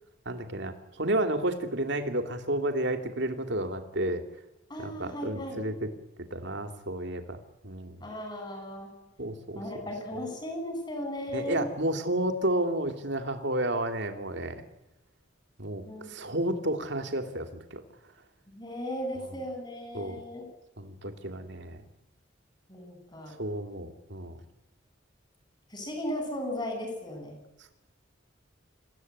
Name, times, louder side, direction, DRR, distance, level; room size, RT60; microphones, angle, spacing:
voice 1, 0.2-4.2 4.8-5.9 6.3-8.1 9.2-9.6 11.3-14.6 15.6-15.8 16.1-17.8 19.9-20.2 20.8-21.8 23.4-24.4, right 1 dB, 65° right, 7 dB, 3.1 m, -31 dB
voice 2, 4.7-5.6 8.0-8.9 9.5-11.7 15.9-16.1 18.5-20.5 22.7-23.3 23.8-23.9 25.7-27.4, left 1 dB, 20° left, 4 dB, 7.9 m, -36 dB
28.0 x 16.0 x 9.7 m, 1.0 s
head